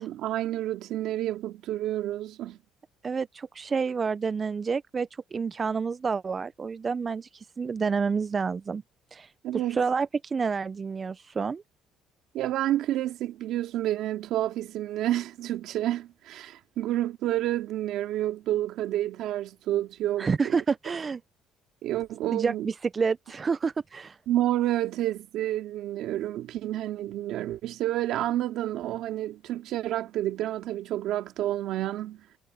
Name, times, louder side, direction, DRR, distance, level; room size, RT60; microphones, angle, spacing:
voice 1, 0.0-2.6 9.4-9.8 12.3-20.6 21.8-22.7 24.3-32.2, right 13 dB, 70° right, 2.6 m, -29 dB
voice 2, 3.0-8.8 9.1-11.6 20.2-21.2 22.3-24.2, right 5 dB, 25° right, 0.3 m, -29 dB
cardioid pair, 140°, 0 cm